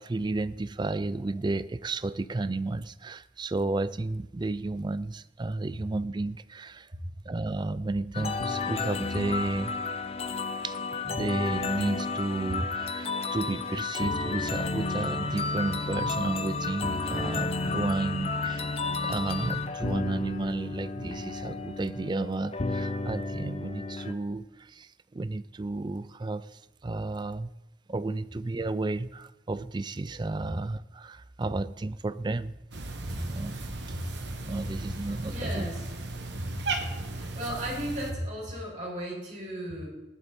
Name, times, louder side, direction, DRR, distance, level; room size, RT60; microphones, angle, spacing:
voice 1, 0.0-6.9 7.3-9.7 10.6-10.8 11.0-18.7 19.0-27.5 27.9-32.5 33.1-33.6 33.9-34.0 34.4-35.7, right 2 dB, 25° right, 0.4 m, -32 dB
sound 1, 8.1-24.1, left 3 dB, 30° left, 0.6 m, -32 dB
Cat, 32.7-38.1, right 2 dB, 60° right, 1.3 m, -36 dB
voice 2, 35.3-35.8 36.4-36.8 37.1-39.9, equal, 40° right, 5.4 m, -35 dB
17.0 x 11.0 x 4.3 m
head